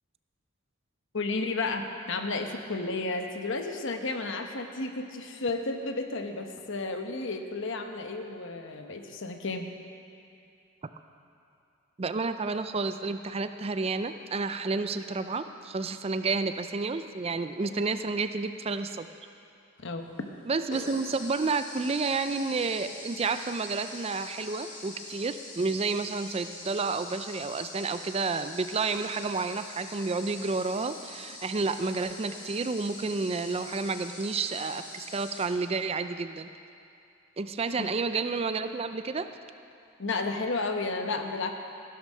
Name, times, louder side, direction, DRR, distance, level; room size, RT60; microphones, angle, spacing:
voice 1, 1.1-9.7 17.6-17.8 19.8-20.3 37.8-37.9 40.0-41.5, left 3 dB, 60° left, 5 dB, 1.0 m, -32 dB
voice 2, 12.0-19.1 20.5-36.5 37.4-39.3, right 4 dB, 30° right, 10 dB, 0.4 m, -30 dB
sound 1, 20.0-20.1 20.7-35.5, left 2 dB, 35° left, 2.3 m, -44 dB
14.5 x 12.5 x 5.5 m, 2.6 s
head